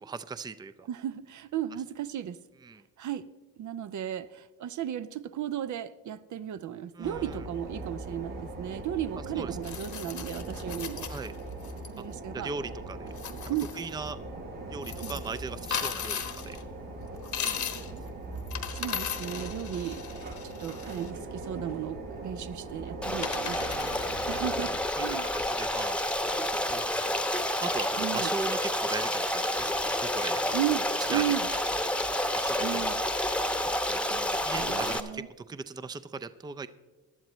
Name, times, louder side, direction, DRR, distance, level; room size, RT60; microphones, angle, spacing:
voice 1, 0.0-0.9 2.6-2.8 6.9-7.4 9.1-9.6 11.1-11.3 12.3-13.1 13.7-14.2 14.7-16.6 17.4-17.6 18.6-18.7 23.6-24.0 25.0-26.0 26.7-27.0 27.6-30.4 31.1-31.2 32.3-32.9 33.6-34.0 34.4-36.7, right 4 dB, 10° right, 13 dB, 0.4 m, -39 dB
voice 2, 0.9-2.4 3.0-3.3 3.6-11.1 11.9-12.5 13.5-13.7 15.0-15.2 18.7-23.8 24.3-25.3 28.0-28.3 30.5-31.5 32.6-33.0 34.1-34.3 34.6-35.3, right 11 dB, 55° right, 13 dB, 0.6 m, -35 dB
sound 1, 7.0-24.7, right 2 dB, 90° right, 4.9 m, -40 dB
sound 2, 9.6-11.9 13.1-13.9 14.8-16.6 17.2-18.0 18.4-21.1 22.6-22.7 23.2-24.5, left 8 dB, 55° left, 1.1 m, -37 dB
Stream, 23.0-35.0, left 1 dB, 5° left, 0.9 m, -29 dB
18.0 x 11.0 x 3.1 m, 1.2 s
cardioid pair, 70°, 35 cm